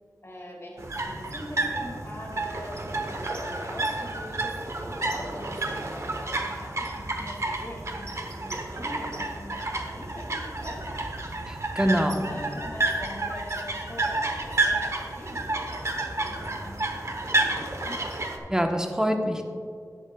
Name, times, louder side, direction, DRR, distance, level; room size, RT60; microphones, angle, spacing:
voice 1, 0.2-11.1 11.8-15.9 16.2-18.0, left 1 dB, 45° left, -2 dB, 2.1 m, -43 dB
sound 1, 0.8-18.4, right 2 dB, 50° right, 0.9 m, -30 dB
voice 2, 11.5-12.3 18.5-19.4, equal, 10° right, 3 dB, 1.0 m, -25 dB
11.5 x 9.8 x 2.3 m, 2.3 s
wide cardioid pair, 55°, 6 cm